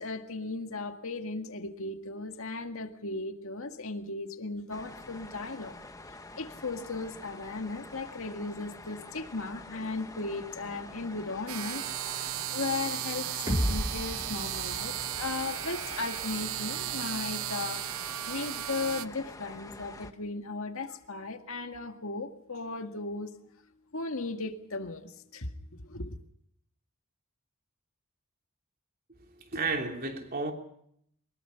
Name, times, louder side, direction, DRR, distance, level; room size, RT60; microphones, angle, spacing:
voice 1, 0.0-5.8 6.1-11.8 12.2-23.3 23.9-26.2, left 3 dB, 70° left, 2.0 m, -36 dB
sound 1, 4.7-20.1, left 2 dB, 15° left, 1.2 m, -47 dB
sound 2, 11.5-19.1, right 12 dB, 70° right, 0.8 m, -35 dB
sound 3, 13.5-17.4, equal, 15° right, 4.2 m, -35 dB
voice 2, 29.4-30.5, right 3 dB, 40° right, 3.2 m, -32 dB
23.5 x 21.5 x 5.8 m
head